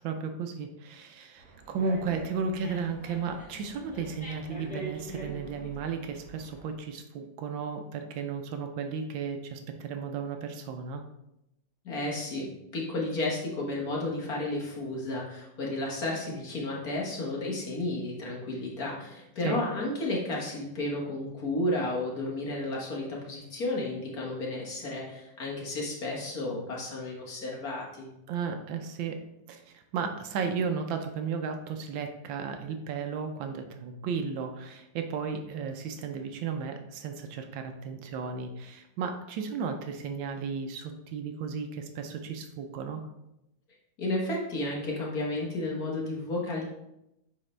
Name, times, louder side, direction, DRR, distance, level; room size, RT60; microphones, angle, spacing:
voice 1, 0.0-11.0 19.4-19.6 28.3-29.2 29.5-43.1, right 5 dB, 80° right, 5 dB, 1.4 m, -34 dB
Dog, 1.4-6.7, right 2 dB, 5° left, 1.8 m, -44 dB
voice 2, 11.9-28.1 44.0-46.6, left 2 dB, 50° left, -3 dB, 1.7 m, -32 dB
9.1 x 3.7 x 3.3 m, 0.86 s
omnidirectional pair, 2.1 m